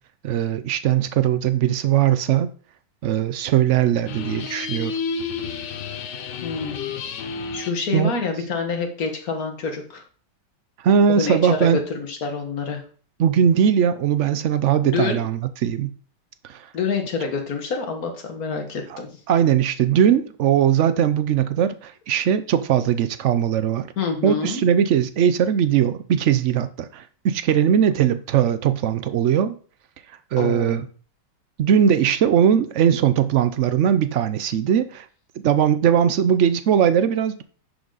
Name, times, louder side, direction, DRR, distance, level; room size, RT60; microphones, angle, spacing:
voice 1, 0.2-2.5 3.0-5.0 7.9-8.1 10.8-11.8 13.2-15.9 16.4-16.7 18.9-19.0 19.3-23.9 24.2-29.6 30.3-30.8 31.6-35.1 35.4-37.4, right 9 dB, 75° right, 0.6 m, -20 dB
sound 1, 4.1-7.8, left 5 dB, 75° left, 1.5 m, -31 dB
voice 2, 6.4-7.0 7.5-10.0 11.2-12.8 14.8-15.2 16.7-19.1 24.0-24.6 30.4-30.8, left 5 dB, 55° left, 1.9 m, -27 dB
11.0 x 5.0 x 4.0 m
omnidirectional pair, 2.0 m